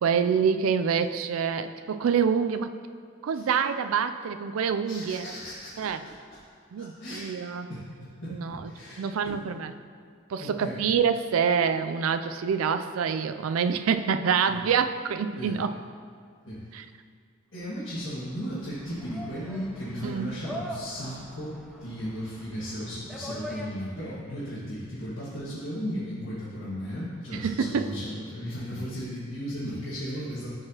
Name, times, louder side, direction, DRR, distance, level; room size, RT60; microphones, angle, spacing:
voice 1, 0.0-2.7 3.2-5.3 5.8-6.0 6.7-7.7 8.3-8.6 9.0-9.7 10.3-15.8 16.7-16.8 20.0-20.3 27.3-27.9, right 6 dB, 75° right, 10 dB, 0.4 m, -26 dB
voice 2, 4.9-6.1 6.5-9.4 10.4-10.8 14.5-14.6 15.4-15.6 16.5-16.6 17.5-30.5, equal, 70° left, -12 dB, 1.8 m, -36 dB
sound 1, 17.8-24.2, equal, ahead, 0.5 m, -42 dB
12.0 x 4.8 x 2.9 m, 2.1 s
head